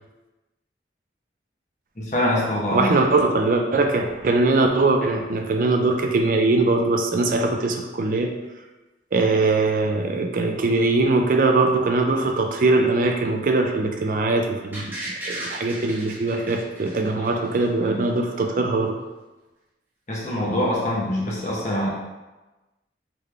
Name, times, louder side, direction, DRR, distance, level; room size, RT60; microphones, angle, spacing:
voice 1, 2.0-3.0 17.2-17.5 17.8-18.0 20.1-21.9, left 1 dB, 40° left, -5 dB, 1.1 m, -25 dB
voice 2, 2.7-8.3 9.1-19.0, right 3 dB, 50° right, 4 dB, 0.4 m, -21 dB
sound 1, 14.7-17.7 18.0-18.1, right 1 dB, 10° right, 0.9 m, -35 dB
3.8 x 3.3 x 3.4 m, 1.1 s
head